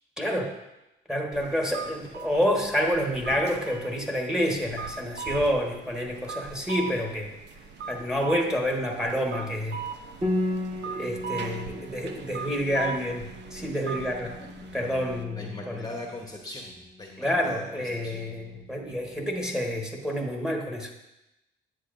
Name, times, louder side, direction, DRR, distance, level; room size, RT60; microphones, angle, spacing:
voice 1, 0.2-0.5 1.1-7.3 7.9-9.8 10.9-14.4 14.7-15.9 17.2-20.9, equal, 5° right, 0 dB, 1.4 m, -28 dB
sound 1, 1.3-15.2, right 6 dB, 60° right, 0.8 m, -40 dB
Piano, 10.2-19.5, left 1 dB, 30° right, 1.9 m, -36 dB
voice 2, 15.3-18.2, left 2 dB, 20° left, 0 dB, 1.1 m, -41 dB
10.0 x 8.0 x 2.6 m, 0.93 s
cardioid pair, 90°, 20 cm